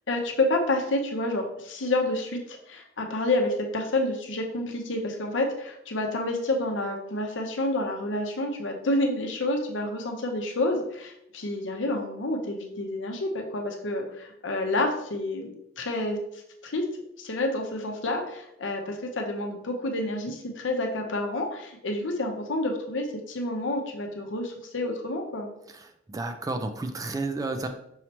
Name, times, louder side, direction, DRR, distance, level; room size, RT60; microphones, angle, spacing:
voice 1, 0.1-16.2 16.6-16.9 17.2-25.5, left 2 dB, 70° left, 3 dB, 0.8 m, -29 dB
voice 2, 25.8-27.7, right 2 dB, 20° right, 6 dB, 0.3 m, -31 dB
5.6 x 3.1 x 2.9 m, 0.78 s
head